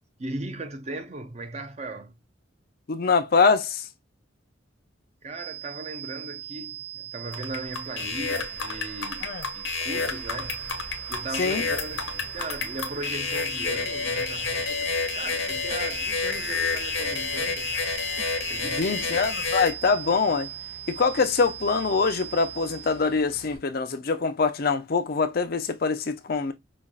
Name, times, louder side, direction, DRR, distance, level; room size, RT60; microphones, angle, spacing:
voice 1, 0.2-2.2 5.2-10.6 11.1-18.0 18.4-19.3, right 2 dB, 35° right, 0.6 m, -38 dB
voice 2, 2.9-3.9 9.2-9.4 11.4-11.6 18.8-20.5 20.9-26.5, left 4 dB, 50° left, 0.5 m, -24 dB
sound 1, 5.3-23.0, right 12 dB, 90° right, 2.1 m, -39 dB
sound 2, 7.3-19.7, left 5 dB, 90° left, 1.1 m, -30 dB
sound 3, 10.0-23.6, equal, 60° right, 2.1 m, -49 dB
5.1 x 2.4 x 2.3 m
head